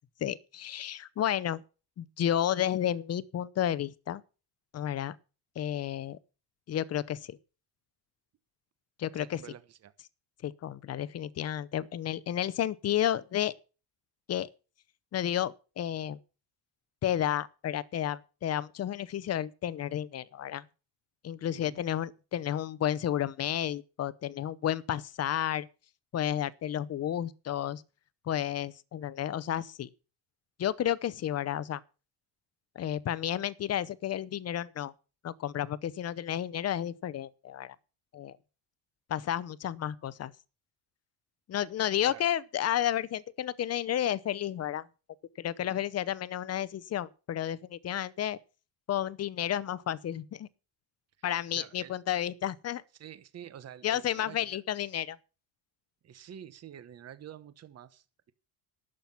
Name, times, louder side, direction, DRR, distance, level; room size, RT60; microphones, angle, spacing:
voice 1, 0.2-1.6 2.0-4.2 4.7-5.2 5.6-6.2 6.7-7.4 9.0-9.4 10.4-13.5 14.3-14.5 15.1-16.2 17.0-20.6 21.2-25.7 26.1-27.8 28.2-29.9 30.6-31.8 32.8-34.9 35.2-37.8 38.1-38.4 39.1-40.3 41.5-44.9 45.4-48.4 48.9-50.5 51.2-52.8 53.8-55.2, left 11 dB, 35° left, 0.7 m, -31 dB
voice 2, 9.1-9.9 21.5-21.8 42.1-42.2 45.6-45.8 51.5-51.9 53.0-54.6 56.0-58.3, right 10 dB, 35° right, 1.1 m, -48 dB
11.5 x 7.7 x 7.1 m
cardioid pair, 145°, 44 cm